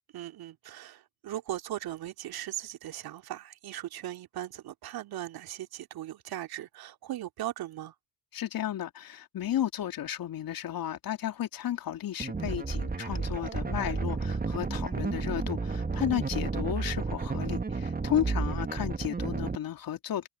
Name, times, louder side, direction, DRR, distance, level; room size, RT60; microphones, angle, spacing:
voice 1, 0.1-7.9, right 13 dB, 60° right, 2.6 m, -38 dB
voice 2, 8.3-20.3, left 11 dB, 55° left, 3.2 m, -33 dB
sound 1, 12.2-19.5, right 4 dB, 20° right, 1.9 m, -32 dB
hypercardioid pair, 50°, 41 cm